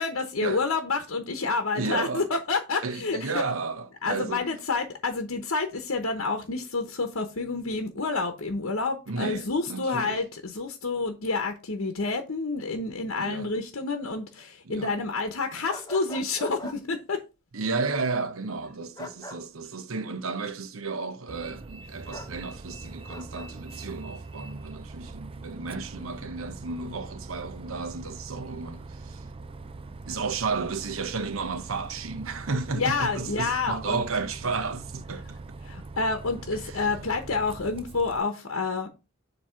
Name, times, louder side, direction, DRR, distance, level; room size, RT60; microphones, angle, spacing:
voice 1, 0.0-3.4 4.0-17.2 32.7-34.0 35.6-38.9, left 3 dB, 80° left, 0.9 m, -29 dB
voice 2, 1.7-2.3 2.8-4.5 9.1-10.2 13.2-13.5 14.7-14.9 17.5-29.2 30.1-35.4 36.6-36.7, right 4 dB, 80° right, 0.8 m, -33 dB
sound 1, 15.7-16.8 19.0-19.4 22.1-22.3 23.1-23.5, equal, 20° left, 1.0 m, -40 dB
Bus, 21.3-38.2, right 3 dB, 25° right, 0.4 m, -42 dB
7.4 x 2.9 x 5.6 m
head